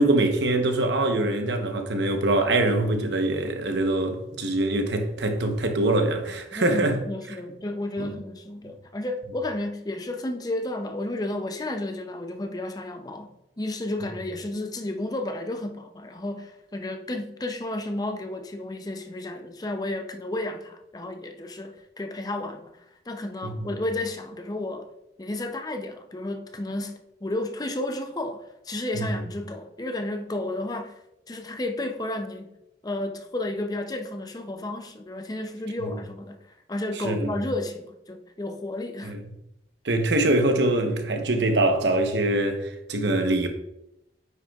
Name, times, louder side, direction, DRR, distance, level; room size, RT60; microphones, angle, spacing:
voice 1, 0.0-7.0 8.0-8.1 23.4-23.7 28.9-29.2 35.8-36.0 37.0-37.3 39.0-39.2 39.8-43.5, right 2 dB, 80° right, 1.0 m, -24 dB
voice 2, 6.5-24.9 25.2-31.0 31.3-32.5 32.8-36.4 36.7-39.1, left 1 dB, 20° left, 0.5 m, -32 dB
9.2 x 6.1 x 2.4 m
head